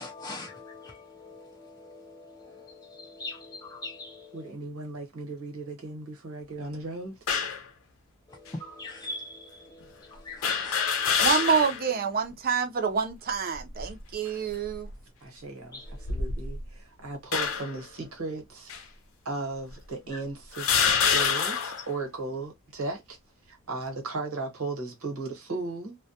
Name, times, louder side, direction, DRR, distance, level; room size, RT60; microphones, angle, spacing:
voice 1, 0.0-4.5 8.3-11.2 15.7-16.2 20.1-20.2, left 2 dB, 15° left, 0.4 m, -42 dB
voice 2, 4.3-7.2 15.2-18.7 19.2-23.2 23.5-26.0, right 3 dB, 85° right, 1.1 m, -36 dB
sound 1, 7.3-7.7 8.5-8.6 10.4-11.9 12.3-12.4 13.5-14.0 14.7-14.9 15.9-16.7 17.3-17.8 18.7-18.8 19.7-19.8 20.5-21.9, left 6 dB, 70° left, 0.6 m, -26 dB
voice 3, 11.2-14.9, right 6 dB, 45° right, 0.5 m, -27 dB
2.2 x 2.1 x 2.7 m
head